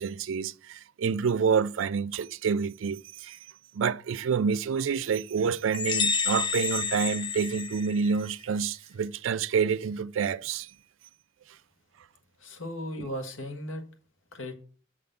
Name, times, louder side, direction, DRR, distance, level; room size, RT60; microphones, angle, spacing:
voice 1, 0.0-3.4 3.7-10.7 13.0-13.1, right 6 dB, 80° right, 0.4 m, -28 dB
sound 1, 5.7-8.3, left 5 dB, 25° left, 0.5 m, -29 dB
voice 2, 12.4-13.8 14.3-14.5, left 1 dB, 90° left, 1.7 m, -36 dB
7.7 x 3.7 x 6.7 m
head